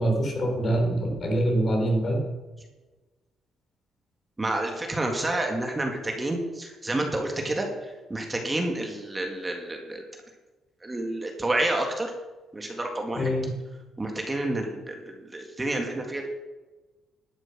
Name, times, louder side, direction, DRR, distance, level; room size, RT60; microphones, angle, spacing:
voice 1, 0.0-2.2 13.2-13.5, right 1 dB, 45° left, 1 dB, 4.1 m, -24 dB
voice 2, 4.4-10.0 10.8-12.1 12.5-13.3 14.0-16.3, right 1 dB, 20° right, 2 dB, 2.0 m, -29 dB
11.5 x 7.9 x 6.1 m, 1.2 s
cardioid pair, 90°, 0 cm